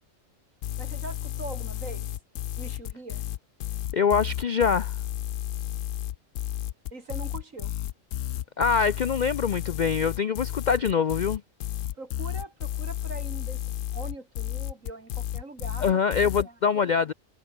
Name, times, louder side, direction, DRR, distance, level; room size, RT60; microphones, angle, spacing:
sound 1, 0.6-16.4, left 12 dB, 75° left, 1.0 m, -32 dB
voice 1, 0.8-2.1 2.6-3.3 6.9-7.7 12.0-13.6 13.9-16.5, right 3 dB, 75° right, 4.4 m, -42 dB
voice 2, 3.9-4.9 8.6-11.4 15.8-17.1, left 6 dB, 60° left, 0.5 m, -24 dB
omnidirectional pair, 1.4 m